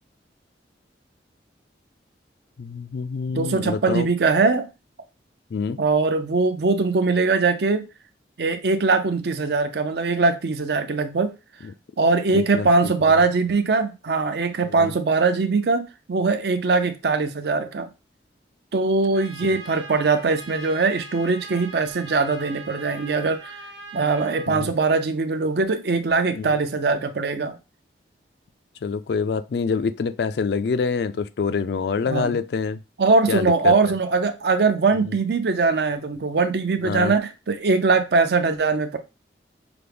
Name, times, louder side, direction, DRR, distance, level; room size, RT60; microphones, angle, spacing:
voice 1, 2.6-4.1 5.5-5.8 11.6-11.7 12.3-12.9 14.8-14.9 19.4-19.5 24.5-24.7 26.3-26.6 28.8-32.8 33.3-33.8 36.8-37.2, left 5 dB, 60° left, 0.3 m, -26 dB
voice 2, 3.3-4.7 5.8-7.9 8.4-11.3 12.0-17.9 18.7-23.5 23.9-27.6 32.1-32.4 33.0-39.0, right 4 dB, 60° right, 0.5 m, -21 dB
Trumpet, 19.1-24.5, right 2 dB, 80° right, 1.2 m, -41 dB
5.9 x 2.0 x 3.4 m
head